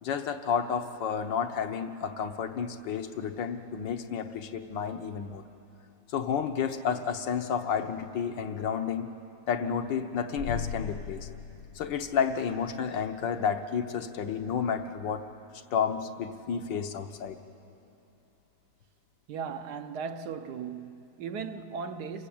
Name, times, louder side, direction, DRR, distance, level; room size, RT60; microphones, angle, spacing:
voice 1, 0.0-5.4 6.1-9.1 9.5-11.3 11.7-15.2 15.7-17.4, left 7 dB, 75° left, 1.6 m, -31 dB
sound 1, 10.4-12.6, left 7 dB, 60° left, 1.3 m, -38 dB
voice 2, 19.3-22.3, right 6 dB, 65° right, 1.2 m, -37 dB
27.0 x 15.0 x 8.6 m
omnidirectional pair, 2.0 m